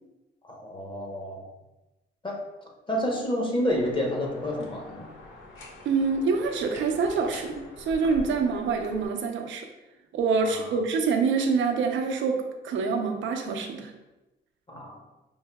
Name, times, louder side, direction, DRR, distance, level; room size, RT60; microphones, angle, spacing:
voice 1, 0.4-1.4 2.2-2.4 2.9-5.1 10.4-10.8 14.7-15.0, equal, 25° left, 0 dB, 0.9 m, -29 dB
sound 1, 3.7-9.1, left 2 dB, 80° left, 0.8 m, -45 dB
voice 2, 5.8-9.7 10.1-13.9, right 4 dB, 75° right, 4 dB, 0.6 m, -26 dB
5.4 x 2.6 x 2.2 m, 1.0 s
cardioid pair, 90°, 20 cm